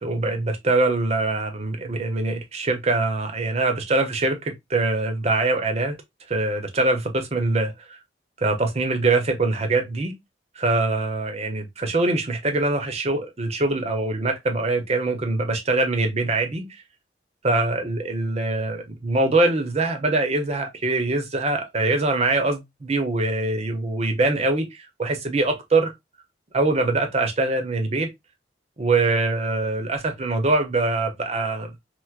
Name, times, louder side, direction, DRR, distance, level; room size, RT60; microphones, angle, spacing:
voice 1, 0.0-6.0 6.3-8.0 8.4-10.1 10.6-16.7 17.4-25.9 26.5-28.1 28.8-31.7, right 2 dB, 35° right, 0.7 m, -23 dB
4.4 x 2.0 x 2.3 m
head